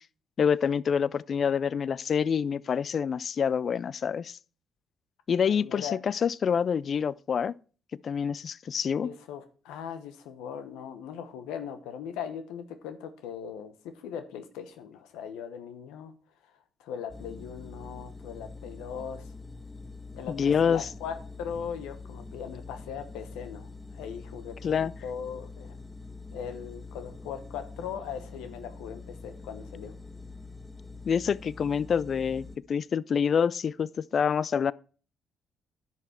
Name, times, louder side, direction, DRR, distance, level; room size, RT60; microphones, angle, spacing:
voice 1, 0.4-4.4 5.3-7.5 8.0-9.1 20.3-20.9 24.6-24.9 31.1-34.7, left 7 dB, 55° left, 0.3 m, -27 dB
voice 2, 5.4-6.0 9.0-16.1 16.8-19.3 20.1-25.7 26.3-29.9, left 8 dB, 85° left, 0.9 m, -39 dB
sound 1, 17.1-32.6, left 3 dB, 10° left, 1.2 m, -45 dB
10.5 x 5.8 x 4.3 m
supercardioid pair, 65°, 0 cm